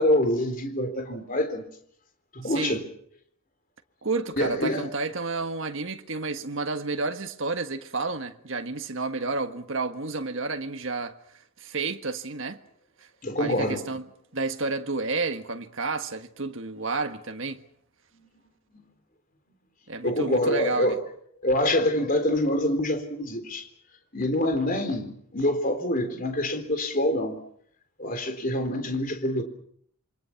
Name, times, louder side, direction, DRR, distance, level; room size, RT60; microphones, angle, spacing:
voice 1, 0.0-1.7 2.3-2.8 4.4-4.9 13.2-13.8 18.7-18.8 20.0-21.0 21.4-23.7 24.1-27.4 28.0-29.4, left 1 dB, 40° left, 3.9 m, -26 dB
voice 2, 2.4-2.8 4.0-11.2 11.6-12.6 13.4-14.0 14.3-17.6 19.9-20.9, right 3 dB, 55° right, 1.6 m, -30 dB
28.0 x 25.0 x 5.9 m
head